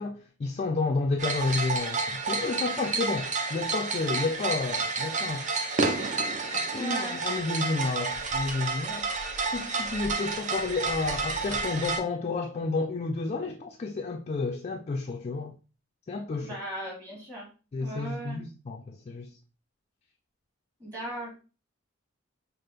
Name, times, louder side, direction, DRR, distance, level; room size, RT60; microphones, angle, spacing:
voice 1, 0.0-5.5 6.5-9.1 9.5-15.6 16.1-16.6 17.7-19.4, left 3 dB, 30° left, 0.3 m, -31 dB
sound 1, 1.2-12.0, right 3 dB, 40° right, 0.5 m, -30 dB
voice 2, 6.7-7.2 16.4-17.5 17.8-18.4 20.8-21.4, right 1 dB, 20° right, 1.8 m, -37 dB
5.6 x 2.0 x 3.3 m
head